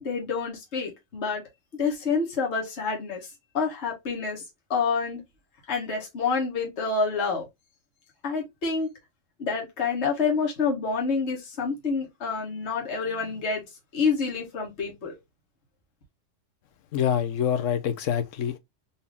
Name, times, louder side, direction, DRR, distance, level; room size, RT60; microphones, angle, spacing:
voice 1, 0.0-1.4 1.8-3.3 3.5-4.4 4.7-5.2 5.7-7.4 8.2-8.9 9.4-13.6 13.9-15.1, left 5 dB, 65° left, 1.5 m, -28 dB
voice 2, 16.9-18.6, left 9 dB, 85° left, 1.1 m, -26 dB
4.2 x 2.7 x 3.4 m
omnidirectional pair, 1.3 m